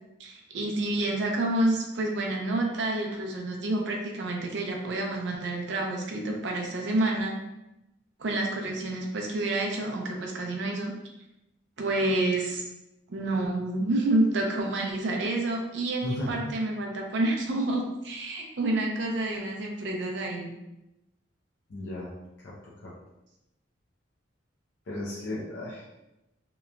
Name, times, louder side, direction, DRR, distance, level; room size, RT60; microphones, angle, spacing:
voice 1, 0.2-7.4 8.2-10.9 11.8-12.7 13.1-20.5, right 2 dB, 65° right, 0 dB, 0.5 m, -28 dB
voice 2, 16.0-16.6 21.7-22.1 22.4-22.9 24.9-25.9, left 1 dB, 65° left, -7 dB, 0.5 m, -35 dB
2.8 x 2.1 x 2.4 m, 0.93 s
head